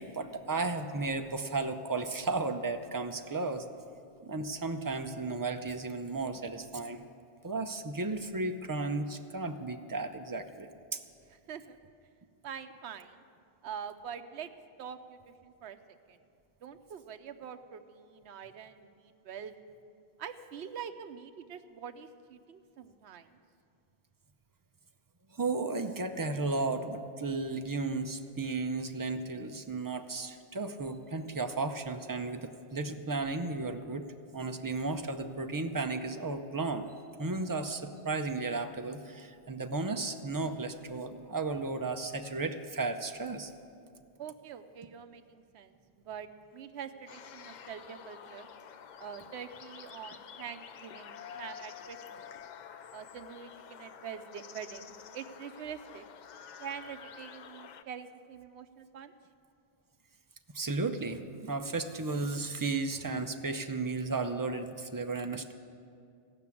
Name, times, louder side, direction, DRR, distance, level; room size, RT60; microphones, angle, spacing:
voice 1, 0.0-3.7 4.2-7.0 7.4-11.0 25.3-34.1 34.3-36.9 37.2-43.5 60.5-65.5, right 3 dB, 30° right, 7 dB, 0.4 m, -34 dB
voice 2, 12.4-13.2 13.6-14.5 14.8-15.8 16.1-16.2 16.6-19.5 20.2-23.3 44.2-48.5 49.0-52.3 52.9-56.1 56.6-59.1, right 7 dB, 85° right, 9 dB, 0.9 m, -45 dB
sound 1, 47.1-57.8, left 8 dB, 55° left, 0.5 m, -49 dB
16.5 x 5.9 x 8.3 m, 2.4 s
omnidirectional pair, 1.1 m